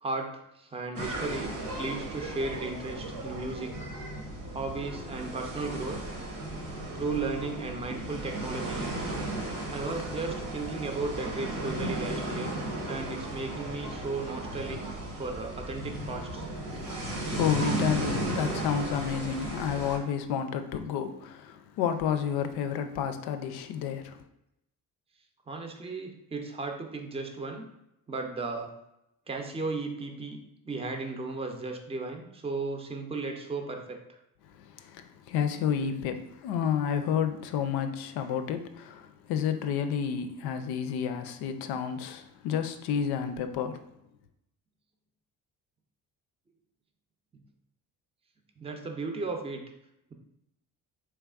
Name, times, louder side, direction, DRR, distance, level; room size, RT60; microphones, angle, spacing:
voice 1, 0.0-3.9 4.5-6.1 6.9-9.1 9.7-12.5 12.9-16.5 25.5-27.7 28.1-28.7 29.3-34.0 48.6-49.6, right 3 dB, 15° right, 0.5 m, -35 dB
sound 1, 1.0-20.0, right 1 dB, 85° right, 1.1 m, -35 dB
voice 2, 16.7-24.2 34.8-43.8, left 8 dB, 75° left, 0.5 m, -30 dB
3.5 x 3.3 x 2.4 m
supercardioid pair, 60°, 38 cm